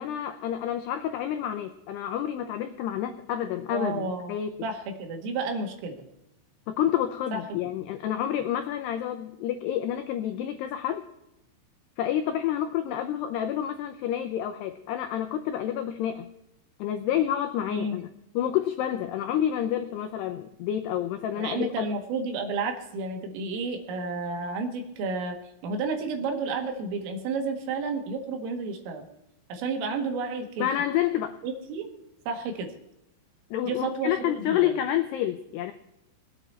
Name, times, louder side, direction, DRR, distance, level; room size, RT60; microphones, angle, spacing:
voice 1, 0.0-4.5 6.7-11.1 12.0-16.3 16.8-18.1 18.4-21.9 30.6-31.4 33.5-35.7, left 10 dB, 85° left, 6 dB, 2.3 m, -29 dB
voice 2, 3.7-4.3 4.6-6.0 7.3-7.4 17.7-18.0 21.4-25.4 25.6-29.1 29.5-30.7 31.4-31.9 32.3-32.7 33.7-34.8, right 4 dB, 80° right, 4 dB, 4.4 m, -31 dB
21.5 x 8.9 x 4.5 m, 0.85 s
omnidirectional pair, 5.8 m